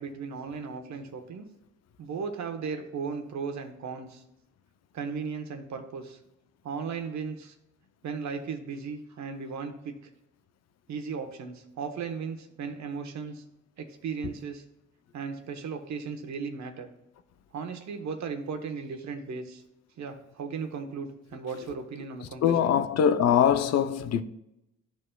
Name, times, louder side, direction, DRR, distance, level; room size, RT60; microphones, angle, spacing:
voice 1, 0.0-1.5 2.0-4.2 4.9-6.2 6.6-7.5 8.0-10.0 10.9-13.4 13.8-14.6 15.1-16.9 17.5-19.6 20.0-22.9, right 5 dB, 65° right, 1.1 m, -36 dB
voice 2, 22.4-24.2, left 8 dB, 60° left, 0.5 m, -22 dB
13.0 x 4.4 x 2.2 m
cardioid pair, 90°, 30 cm